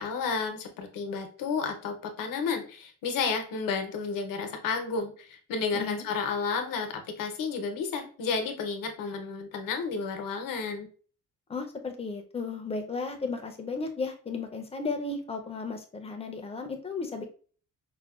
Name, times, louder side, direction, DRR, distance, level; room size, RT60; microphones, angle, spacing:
voice 1, 0.0-10.9, left 5 dB, 90° left, 5 dB, 0.7 m, -32 dB
voice 2, 5.7-6.1 11.5-17.2, left 4 dB, 20° left, 4 dB, 0.4 m, -34 dB
4.9 x 2.1 x 2.3 m, 0.42 s
cardioid pair, 150°, 32 cm